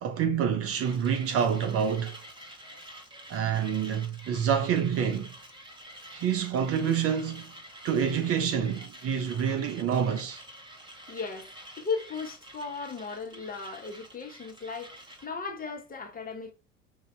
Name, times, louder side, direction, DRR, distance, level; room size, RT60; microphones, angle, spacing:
voice 1, 0.0-2.2 3.3-5.3 6.1-7.5 7.8-10.4, right 7 dB, 40° right, 0.7 m, -27 dB
Mechanisms, 0.8-15.3, right 1 dB, 10° right, 1.6 m, -48 dB
voice 2, 11.1-16.5, left 4 dB, 25° left, 1.2 m, -36 dB
5.3 x 2.7 x 3.3 m
figure-of-eight pair, 70°, 37 cm